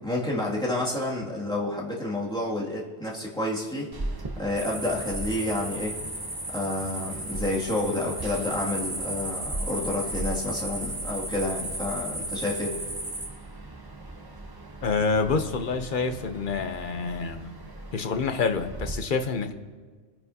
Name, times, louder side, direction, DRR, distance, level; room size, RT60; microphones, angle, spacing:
voice 1, 0.0-6.0 6.5-12.8, left 1 dB, 5° left, -5 dB, 2.3 m, -30 dB
sound 1, 3.9-18.9, right 2 dB, 20° right, 0.8 m, -39 dB
sound 2, 4.6-13.3, right 1 dB, 60° right, 4.1 m, -35 dB
voice 2, 14.8-17.5 17.9-19.5, left 4 dB, 45° left, 7 dB, 0.9 m, -27 dB
25.5 x 10.0 x 2.8 m, 1.5 s
omnidirectional pair, 1.2 m